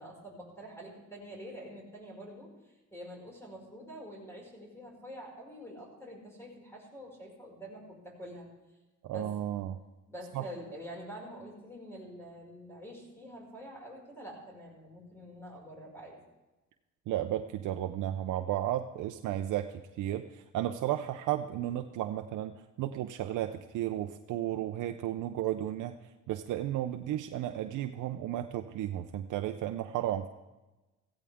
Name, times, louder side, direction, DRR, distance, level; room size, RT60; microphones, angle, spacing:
voice 1, 0.0-2.5 2.9-8.5 9.1-9.3 10.1-16.2, equal, 10° left, -1 dB, 5.6 m, -46 dB
voice 2, 9.0-9.8 10.3-10.4 17.1-26.0 26.3-30.3, right 12 dB, 80° right, 7 dB, 0.7 m, -33 dB
16.0 x 15.5 x 3.6 m, 1.1 s
cardioid pair, 90°, 30 cm